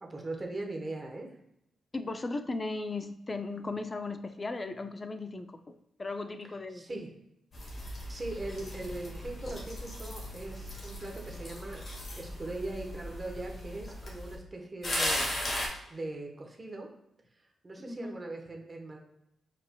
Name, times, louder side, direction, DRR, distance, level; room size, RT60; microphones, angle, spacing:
voice 1, 0.0-1.3 6.7-7.1 8.1-11.9 12.1-16.9 17.6-19.0, right 2 dB, 30° right, 1 dB, 1.2 m, -40 dB
voice 2, 1.9-7.0 17.9-18.2, left 3 dB, 30° left, 9 dB, 0.5 m, -37 dB
sound 1, 7.5-14.4 14.8-15.7, left 1 dB, 50° left, 1.7 m, -37 dB
4.8 x 4.7 x 2.3 m, 0.81 s
cardioid pair, 75°, 0 cm